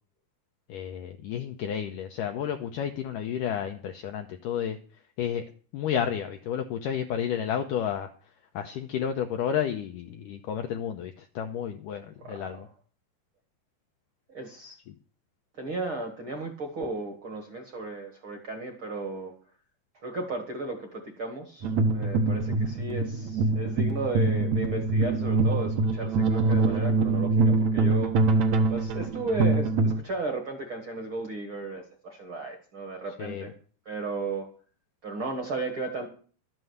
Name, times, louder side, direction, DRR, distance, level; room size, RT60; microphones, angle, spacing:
voice 1, 0.7-4.8 5.2-5.4 5.7-8.1 8.5-12.7 14.9-15.0 33.2-33.5, left 9 dB, 80° left, 5 dB, 1.9 m, -31 dB
voice 2, 12.2-12.6 14.3-14.8 15.6-19.3 20.0-28.1 28.7-33.5 33.8-34.5 35.0-36.1, right 2 dB, 45° right, 4 dB, 1.8 m, -35 dB
sound 1, 21.6-30.0, right 3 dB, 65° right, 2.0 m, -24 dB
12.5 x 7.6 x 7.9 m, 0.41 s
omnidirectional pair, 4.7 m